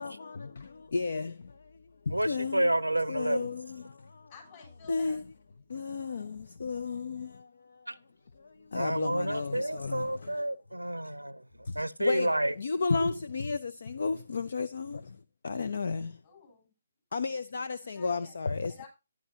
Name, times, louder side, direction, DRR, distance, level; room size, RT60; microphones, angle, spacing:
voice 1, 0.0-1.4 2.1-2.7 3.1-3.8 4.9-5.2 5.7-7.4 8.7-10.3 11.7-11.8 12.0-15.0 15.4-16.1 17.1-18.7, left 4 dB, 55° left, 0.5 m, -33 dB
voice 2, 2.1-3.6 7.9-8.0 8.7-11.4 11.8-12.5 12.9-13.2, right 1 dB, 90° right, 0.6 m, -30 dB
voice 3, 4.3-5.2 16.2-16.7 17.8-18.4 18.7-18.9, left 5 dB, 35° left, 7.1 m, -52 dB
12.5 x 10.5 x 2.8 m
figure-of-eight pair, 140°, 0 cm